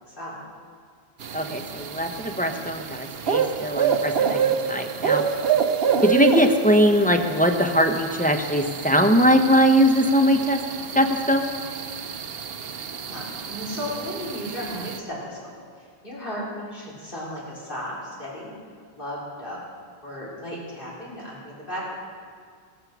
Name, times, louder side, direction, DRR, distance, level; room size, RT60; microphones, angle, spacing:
voice 1, 0.1-0.4 13.1-18.5 18.9-19.6 20.0-22.0, equal, 55° left, -5 dB, 4.5 m, -35 dB
sound 1, 1.2-15.0, right 7 dB, 70° right, 1.0 m, -28 dB
voice 2, 1.3-5.3 6.0-10.6 10.9-11.5, equal, 10° left, 4 dB, 0.9 m, -21 dB
16.5 x 14.0 x 6.1 m, 2.1 s
omnidirectional pair, 1.1 m